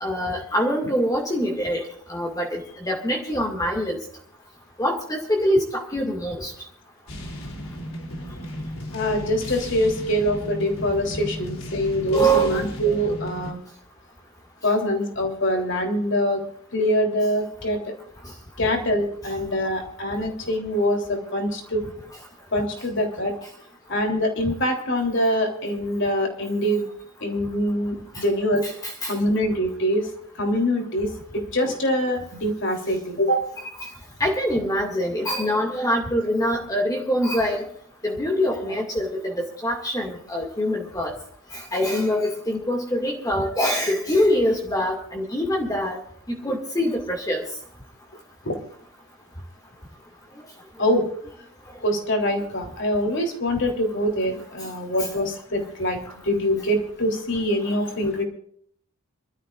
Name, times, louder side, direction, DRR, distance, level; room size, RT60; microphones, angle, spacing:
voice 1, 0.0-1.8 2.1-4.0 4.8-6.5 12.1-12.7 28.1-28.2 28.6-29.1 31.6-31.8 33.8-33.9 34.2-37.6 38.0-41.1 41.5-46.0 46.3-47.4, equal, 15° left, 0 dB, 2.3 m, -24 dB
sound 1, 7.1-13.5, equal, 75° left, 3.4 m, -35 dB
voice 2, 8.9-13.6 14.6-16.4 16.7-17.8 18.6-21.8 22.5-23.3 23.9-26.9 27.2-28.7 29.1-30.0 30.4-33.4 46.5-46.6 48.5-48.6 50.8-51.0 51.8-56.0 56.2-58.2, equal, 55° left, 2 dB, 3.6 m, -24 dB
26.5 x 13.5 x 2.6 m, 0.63 s
head